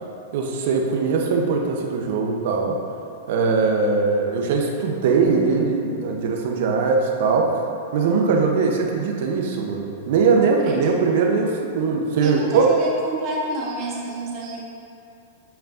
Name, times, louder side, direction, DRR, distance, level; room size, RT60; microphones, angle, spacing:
voice 1, 0.3-2.8 3.3-7.5 7.9-12.6, right 4 dB, 60° right, 1 dB, 0.8 m, -21 dB
voice 2, 10.6-10.9 12.2-14.7, right 1 dB, 40° right, -3 dB, 1.2 m, -29 dB
7.9 x 4.5 x 2.6 m, 2.6 s
hypercardioid pair, 125°, 0 cm